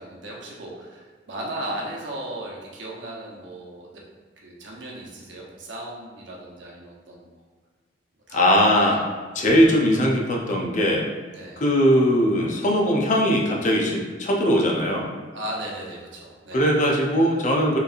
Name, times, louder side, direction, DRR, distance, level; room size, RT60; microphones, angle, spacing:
voice 1, 0.0-4.0 4.4-7.2 8.3-9.0 11.3-11.6 15.3-16.6, right 1 dB, 85° right, -2 dB, 0.9 m, -36 dB
voice 2, 8.3-9.0 9.3-11.0 11.6-15.1 16.5-17.8, equal, 45° left, -1 dB, 0.6 m, -20 dB
4.7 x 3.2 x 2.5 m, 1.5 s
head